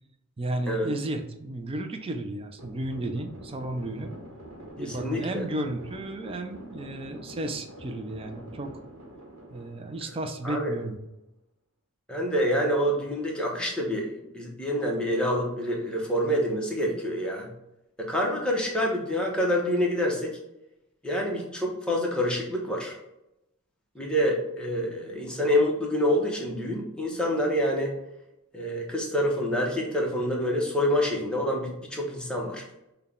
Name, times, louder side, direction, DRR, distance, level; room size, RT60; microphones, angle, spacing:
voice 1, 0.4-4.1 4.8-8.8 9.5-11.0, right 1 dB, 25° right, 6 dB, 0.4 m, -33 dB
sound 1, 2.6-10.9, right 1 dB, 65° right, 1.0 m, -46 dB
voice 2, 4.8-5.4 10.4-10.7 12.1-17.5 18.0-20.4 21.0-23.0 23.9-27.9 28.5-32.6, equal, 5° left, -2 dB, 0.8 m, -27 dB
5.6 x 2.3 x 3.6 m, 0.88 s
head